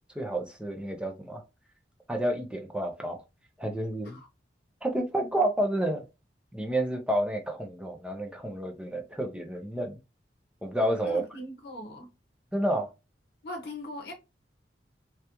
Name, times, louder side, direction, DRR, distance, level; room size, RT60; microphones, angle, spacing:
voice 1, 0.1-1.4 2.1-3.2 3.6-4.2 4.8-6.0 6.5-10.0 10.6-11.2 12.5-12.9, right 1 dB, 5° right, 0.5 m, -30 dB
voice 2, 11.0-12.1 13.4-14.1, left 1 dB, 65° left, 0.8 m, -40 dB
3.3 x 2.4 x 2.9 m
head